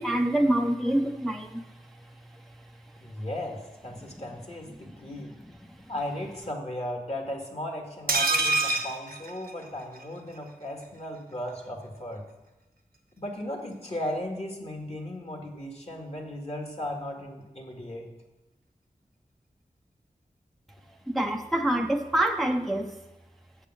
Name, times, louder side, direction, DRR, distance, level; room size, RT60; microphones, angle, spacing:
voice 1, 0.0-1.6 21.1-23.0, right 1 dB, ahead, 3 dB, 0.5 m, -26 dB
voice 2, 3.0-5.3 5.9-12.2 13.2-18.1, left 1 dB, 45° left, 1 dB, 1.9 m, -36 dB
sound 1, 8.1-10.0 10.4-10.5 10.7-10.8, right 3 dB, 85° right, 1.0 m, -26 dB
7.7 x 6.7 x 6.1 m, 1.0 s
wide cardioid pair, 60°, 15 cm